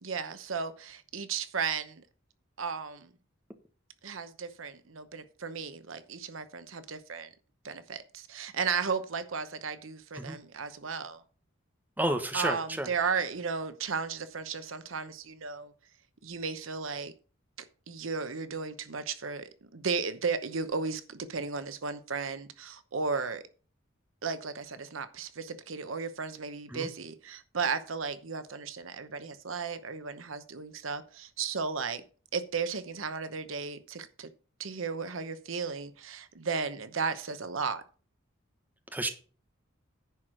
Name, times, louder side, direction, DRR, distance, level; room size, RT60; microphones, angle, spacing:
voice 1, 0.0-2.0 2.6-3.1 4.0-7.3 7.6-11.2 12.3-15.7 16.2-17.1 17.9-23.5 24.2-32.0 32.3-34.3 34.6-37.8, right 5 dB, 80° right, 0.9 m, -35 dB
voice 2, 12.0-12.9 26.7-26.9 38.9-39.1, right 1 dB, 10° right, 1.1 m, -31 dB
10.5 x 4.8 x 6.1 m
head